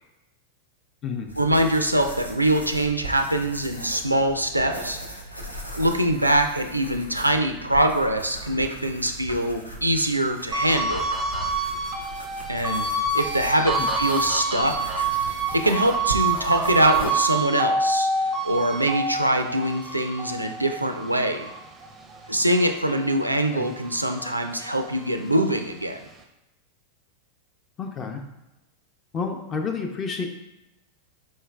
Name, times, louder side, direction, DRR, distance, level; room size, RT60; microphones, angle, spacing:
sound 1, 1.3-17.1, right 1 dB, 90° left, 0.5 m, -38 dB
voice 1, 1.4-5.0 5.7-11.0 12.5-12.8 13.1-15.0 15.5-18.1 18.4-21.5 22.3-26.0, right 1 dB, 85° right, 5 dB, 0.3 m, -23 dB
sound 2, 10.5-23.1 23.5-25.2, right 3 dB, 20° right, 0.5 m, -27 dB
voice 2, 27.8-28.2 29.1-30.3, left 5 dB, 25° left, 4 dB, 0.6 m, -30 dB
4.6 x 4.4 x 2.3 m, 0.94 s
figure-of-eight pair, 90°, 0 cm